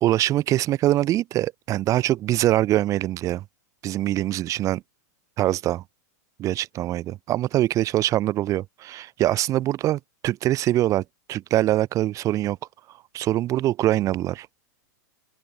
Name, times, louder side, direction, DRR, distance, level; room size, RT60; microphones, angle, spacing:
voice 1, 0.0-3.4 3.8-4.8 5.4-5.8 6.4-12.6 13.1-14.5, right 14 dB, 35° right, 2.7 m, -23 dB
open air
hypercardioid pair, 105°, 10 cm